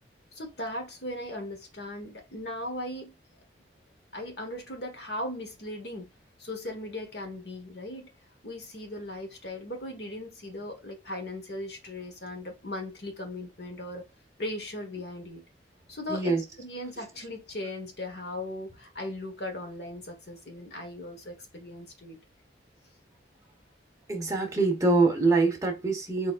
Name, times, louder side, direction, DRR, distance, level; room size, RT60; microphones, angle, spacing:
voice 1, 0.3-3.1 4.1-6.1 6.4-8.1 8.4-14.1 14.4-15.4 15.9-22.2, left 1 dB, 65° left, 1.4 m, -38 dB
voice 2, 16.1-16.4 24.1-26.3, right 3 dB, 20° right, 1.2 m, -24 dB
4.7 x 4.1 x 2.5 m
head